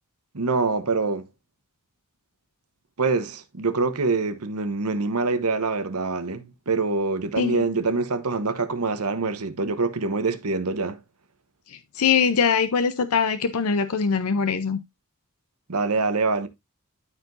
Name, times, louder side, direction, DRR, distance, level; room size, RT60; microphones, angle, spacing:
voice 1, 0.3-1.3 3.0-11.0 15.7-16.5, right 3 dB, 80° right, 1.1 m, -25 dB
voice 2, 11.7-14.8, left 6 dB, 70° left, 0.6 m, -22 dB
12.5 x 4.7 x 2.6 m
head